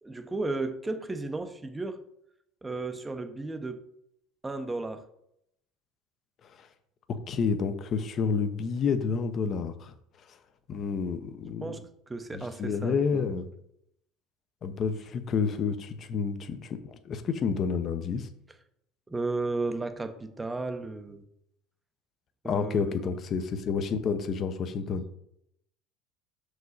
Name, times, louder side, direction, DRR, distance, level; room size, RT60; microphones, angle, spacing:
voice 1, 0.0-2.0 2.6-3.8 4.4-5.0 11.6-11.8 12.1-13.3 19.1-21.2 22.4-23.0 24.9-25.0, right 3 dB, 10° right, 8 dB, 0.7 m, -34 dB
voice 2, 7.1-9.9 10.7-11.8 12.3-13.5 14.6-18.3 22.4-25.1, left 5 dB, 35° left, 10 dB, 0.7 m, -29 dB
6.0 x 4.8 x 4.0 m, 0.75 s
cardioid pair, 135°, 0 cm